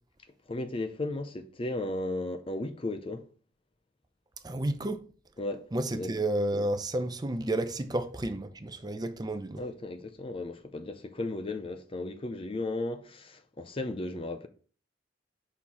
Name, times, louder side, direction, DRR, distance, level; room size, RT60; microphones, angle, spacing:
voice 1, 0.5-3.3 5.4-5.7 5.9-6.1 9.6-14.5, left 2 dB, 30° left, 0.5 m, -35 dB
voice 2, 4.4-5.0 5.7-9.6, right 1 dB, 20° right, 0.6 m, -31 dB
5.6 x 4.4 x 4.7 m
head